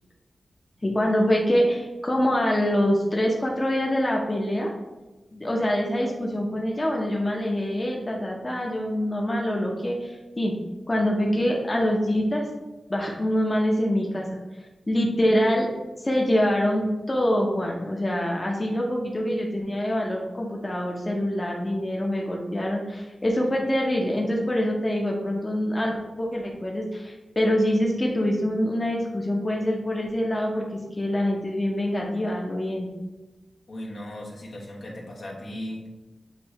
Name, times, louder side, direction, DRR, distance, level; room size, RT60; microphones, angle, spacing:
voice 1, 0.8-4.7 5.3-10.1 10.4-10.5 10.9-12.4 12.9-14.3 14.9-15.7 16.0-30.6 30.9-32.9, equal, 30° left, -1 dB, 0.8 m, -25 dB
voice 2, 33.7-35.9, left 1 dB, 70° left, -3 dB, 1.1 m, -37 dB
6.7 x 2.6 x 3.1 m, 1.1 s
cardioid pair, 60°, 0 cm